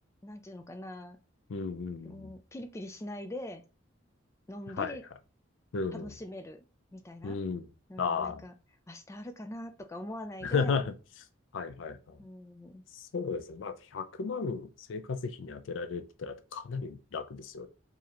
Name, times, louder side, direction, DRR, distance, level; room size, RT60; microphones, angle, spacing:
voice 1, 0.2-1.2 2.0-3.6 4.5-5.0 5.9-6.6 6.9-7.4 7.9-8.5 8.9-10.8 12.2-12.8, left 1 dB, 15° left, 0.3 m, -42 dB
voice 2, 1.5-2.3 4.8-5.0 5.7-6.1 7.2-7.7 8.0-8.4 10.4-10.9 11.5-12.2 12.9-17.7, left 5 dB, 75° left, 0.4 m, -34 dB
4.7 x 2.7 x 2.9 m
head